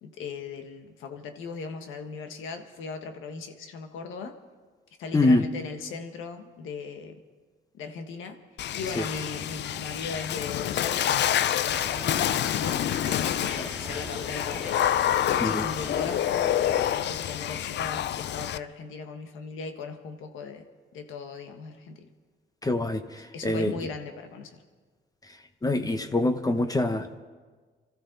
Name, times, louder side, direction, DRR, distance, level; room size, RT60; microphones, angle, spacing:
voice 1, 0.0-4.3 5.0-7.2 7.7-8.4 8.7-12.8 13.4-14.8 15.3-20.6 20.9-22.1 23.3-24.6, left 4 dB, 85° left, 6 dB, 1.5 m, -38 dB
voice 2, 5.1-5.4 9.0-9.1 13.4-13.7 15.4-15.7 22.6-23.7 25.6-27.2, left 2 dB, 20° left, 8 dB, 1.1 m, -25 dB
Water / Splash splatter, 8.6-18.6, left 11 dB, 65° left, 0.5 m, -27 dB
sound 1, 11.7-16.9, right 1 dB, 5° right, 1.8 m, -42 dB
25.5 x 13.5 x 4.0 m, 1.4 s
cardioid pair, 90°, 20 cm